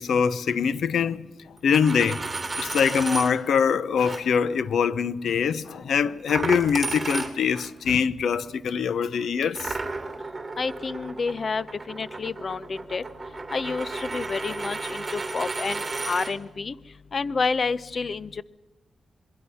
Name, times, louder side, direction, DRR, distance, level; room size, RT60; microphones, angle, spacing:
voice 1, 0.0-2.2 2.6-9.8, left 6 dB, 80° left, 0.8 m, -24 dB
Coin (dropping), 1.6-3.3 4.0-4.2 6.3-7.7 9.5-16.3, right 3 dB, 25° right, 3.2 m, -33 dB
voice 2, 10.6-13.0 13.5-16.7 17.1-18.4, left 4 dB, 50° left, 0.7 m, -29 dB
27.0 x 21.5 x 5.7 m
cardioid pair, 95°, 0 cm